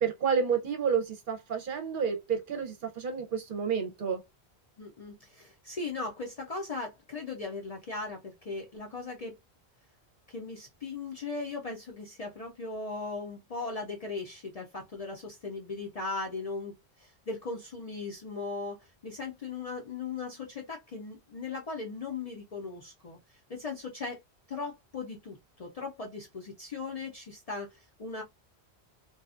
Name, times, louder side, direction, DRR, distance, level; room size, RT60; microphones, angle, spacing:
voice 1, 0.0-4.2, right 6 dB, 55° right, 0.7 m, -30 dB
voice 2, 4.8-9.3 10.3-16.7 17.0-23.2 23.5-24.2 24.5-28.2, left 3 dB, 50° left, 0.5 m, -38 dB
2.8 x 2.3 x 2.3 m
omnidirectional pair, 1.1 m